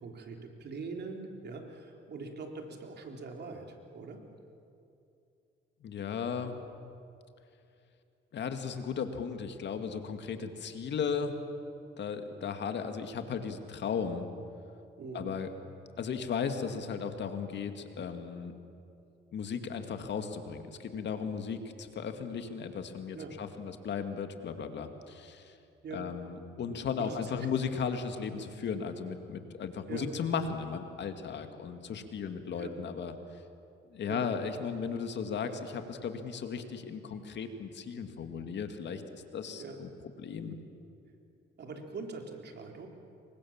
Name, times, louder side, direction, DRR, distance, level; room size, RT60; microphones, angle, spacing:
voice 1, 0.0-4.2 15.0-15.4 23.1-23.3 25.8-26.0 26.9-27.6 29.9-30.1 32.5-32.7 34.0-34.3 39.5-39.8 41.6-42.9, right 4 dB, 60° right, 3 dB, 3.7 m, -42 dB
voice 2, 5.8-6.6 8.3-11.3 12.0-14.3 15.1-15.5 16.0-18.5 19.3-25.6 25.9-33.1 33.9-39.9 40.2-40.6, left 6 dB, 60° left, 7 dB, 2.3 m, -36 dB
28.0 x 23.5 x 7.4 m, 2.6 s
cardioid pair, 90°, 20 cm